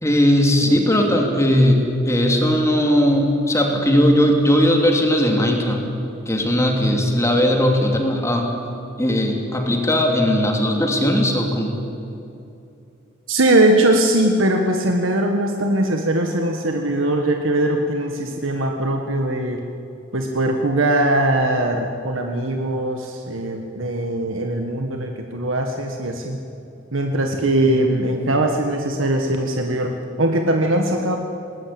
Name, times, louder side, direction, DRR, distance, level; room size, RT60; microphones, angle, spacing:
voice 1, 0.0-5.8 6.3-8.5 9.0-11.8, equal, 15° left, 2 dB, 2.8 m, -18 dB
voice 2, 13.3-19.6 20.1-26.4 26.9-31.2, right 1 dB, 75° right, 3 dB, 1.6 m, -20 dB
20.5 x 19.0 x 8.8 m, 2.7 s
head